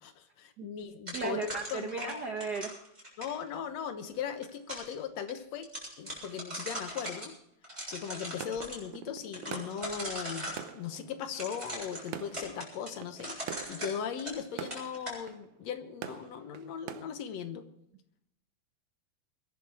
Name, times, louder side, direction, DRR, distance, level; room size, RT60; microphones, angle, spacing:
voice 1, 0.0-2.3 3.2-5.7 6.0-7.4 7.9-13.4 13.7-17.7, left 8 dB, 70° left, 9 dB, 2.2 m, -38 dB
sound 1, 1.1-3.4 4.2-4.9 5.3-5.4 5.6-7.3 7.6-8.8 9.3-10.6 11.3-14.5 14.7-15.2, equal, 15° right, 7.4 m, -40 dB
voice 2, 1.1-2.7, right 4 dB, 65° right, 5 dB, 1.0 m, -35 dB
sound 2, 8.4-17.0, right 9 dB, 85° right, 2.4 m, -46 dB
22.0 x 11.0 x 4.8 m, 0.77 s
omnidirectional pair, 3.3 m